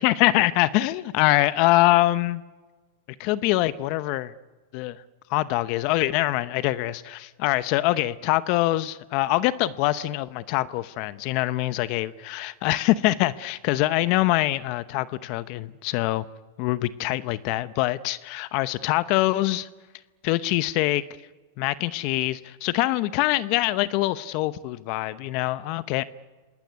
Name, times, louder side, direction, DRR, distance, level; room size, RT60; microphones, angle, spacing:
voice 1, 0.0-2.4 3.2-4.3 4.7-5.0 5.3-16.2 16.6-19.7 20.2-21.0 21.6-26.0, left 17 dB, 50° left, 15 dB, 0.8 m, -24 dB
26.5 x 19.0 x 9.7 m, 1.3 s
hypercardioid pair, 120°, 0 cm